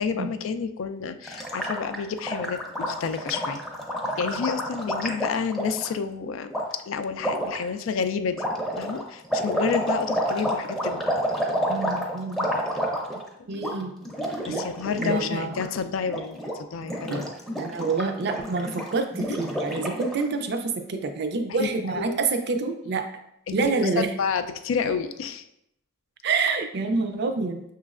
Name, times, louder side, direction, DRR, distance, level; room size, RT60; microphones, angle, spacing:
voice 1, 0.0-3.6 4.2-6.6 6.9-8.4 8.8-11.0 14.5-17.3 21.6-22.2 23.6-25.4, left 6 dB, 85° left, 10 dB, 0.3 m, -29 dB
Gurgling, 1.2-5.9 6.5-6.6 7.2-7.6 8.3-13.3 13.5-13.7 14.0-15.2 15.4-15.7 16.0-16.5 16.8-20.2, equal, ahead, 0.5 m, -29 dB
voice 2, 11.7-12.5 13.5-13.9 14.5-14.7 15.0-15.6 17.1-17.3 17.6-23.1 23.5-24.1 26.2-27.6, right 4 dB, 55° right, 7 dB, 0.4 m, -27 dB
5.7 x 3.1 x 2.4 m, 0.78 s
head